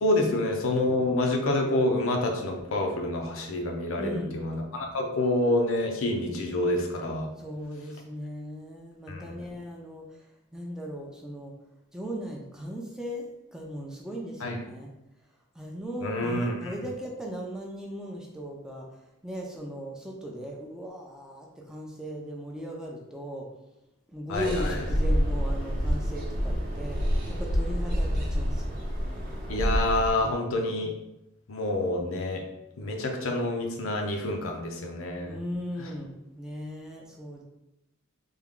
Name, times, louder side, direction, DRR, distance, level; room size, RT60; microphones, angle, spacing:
voice 1, 0.0-7.3 9.1-9.3 14.4-14.6 16.0-16.7 24.3-24.8 29.5-30.9 31.5-32.4 32.8-35.4, left 1 dB, 70° left, 2 dB, 0.6 m, -27 dB
voice 2, 4.0-4.4 7.4-11.6 11.9-13.3 13.5-14.9 15.5-18.9 19.2-23.5 24.1-28.7 30.1-30.3 35.2-37.4, equal, 5° right, -1 dB, 0.4 m, -38 dB
sound 1, 24.3-30.1, equal, 45° right, 0.8 m, -28 dB
3.4 x 2.3 x 3.6 m, 0.90 s
head